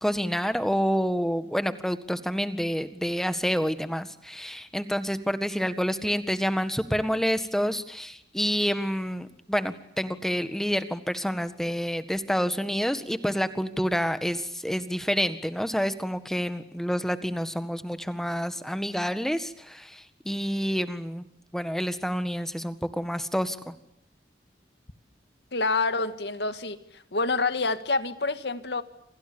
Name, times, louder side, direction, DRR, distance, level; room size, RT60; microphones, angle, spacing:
voice 1, 0.0-21.3 21.5-23.7, equal, ahead, 11 dB, 1.7 m, -28 dB
voice 2, 25.5-28.8, left 3 dB, 75° left, 11 dB, 2.0 m, -27 dB
29.0 x 27.0 x 7.0 m, 0.73 s
head